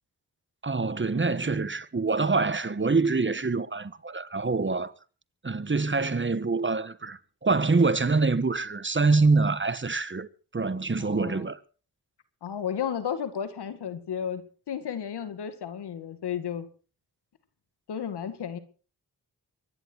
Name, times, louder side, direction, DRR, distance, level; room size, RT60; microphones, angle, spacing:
voice 1, 0.6-4.9 5.4-11.6, right 3 dB, 30° right, 1.3 m, -25 dB
voice 2, 11.0-11.5 12.4-16.7 17.9-18.6, left 8 dB, 85° left, 2.0 m, -33 dB
24.0 x 10.5 x 4.6 m
cardioid pair, 45°, 39 cm